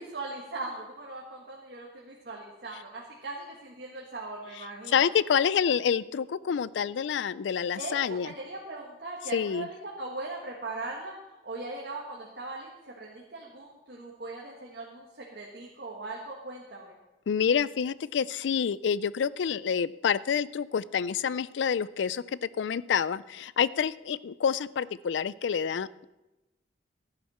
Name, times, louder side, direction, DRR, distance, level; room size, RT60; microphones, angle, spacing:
voice 1, 0.1-5.0 7.8-17.0, right 2 dB, 60° right, -2 dB, 1.7 m, -40 dB
voice 2, 4.9-8.3 9.3-9.7 17.3-26.0, left 7 dB, 85° left, 19 dB, 0.4 m, -28 dB
16.0 x 11.0 x 4.3 m, 1.0 s
head